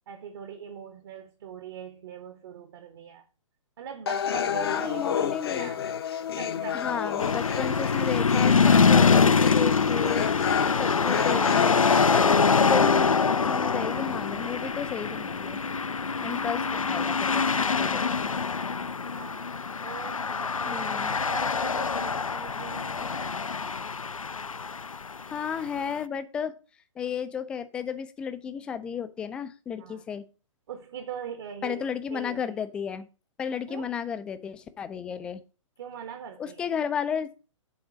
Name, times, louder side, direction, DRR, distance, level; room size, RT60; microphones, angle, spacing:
voice 1, 0.1-3.2 3.8-5.8 6.3-7.1 10.5-10.9 16.2-16.6 18.8-19.5 19.8-23.6 29.8-30.0 30.7-32.5 33.7-33.9 35.8-36.7, right 7 dB, 45° right, 1.0 m, -42 dB
sound 1, 4.1-12.0, left 8 dB, 50° left, 0.7 m, -30 dB
voice 2, 4.6-5.7 6.7-10.3 10.8-11.9 12.1-15.6 16.2-18.3 20.6-21.2 25.3-26.6 27.0-30.2 31.6-33.1 33.4-35.4 36.4-37.3, left 7 dB, 5° left, 0.3 m, -33 dB
sound 2, 7.2-25.6, left 5 dB, 85° left, 0.4 m, -24 dB
7.5 x 3.9 x 6.1 m
figure-of-eight pair, 125°, 17 cm